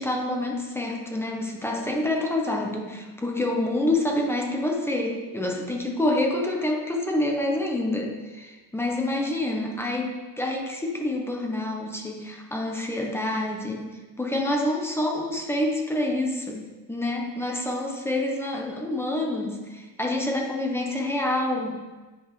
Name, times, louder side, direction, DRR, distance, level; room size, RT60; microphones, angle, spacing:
voice 1, 0.0-13.9 14.2-21.8, left 1 dB, 5° left, 0 dB, 0.7 m, -27 dB
9.8 x 5.1 x 3.1 m, 1.2 s
cardioid pair, 175°, 39 cm